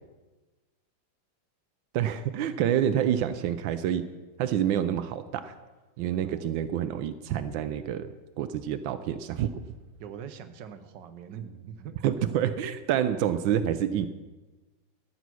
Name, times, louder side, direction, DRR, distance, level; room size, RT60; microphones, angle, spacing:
voice 1, 1.9-4.0 4.4-5.5 6.0-9.6 12.0-14.1, right 10 dB, 90° right, 11 dB, 1.4 m, -28 dB
voice 2, 10.0-12.0, right 8 dB, 70° right, 9 dB, 1.5 m, -42 dB
13.5 x 9.5 x 6.2 m, 1.2 s
omnidirectional pair, 2.0 m